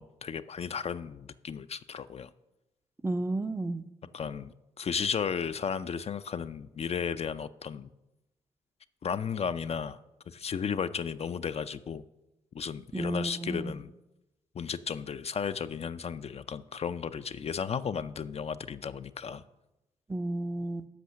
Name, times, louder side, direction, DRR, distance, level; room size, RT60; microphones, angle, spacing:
voice 1, 0.0-2.3 4.1-7.9 9.0-10.0 10.3-12.0 12.5-13.9 14.5-19.4, left 6 dB, 40° left, 11 dB, 0.4 m, -34 dB
voice 2, 3.0-3.8 12.9-13.7 20.1-20.9, right 2 dB, 15° right, 11 dB, 0.5 m, -32 dB
8.4 x 5.4 x 6.4 m, 0.97 s
hypercardioid pair, 45°, 16 cm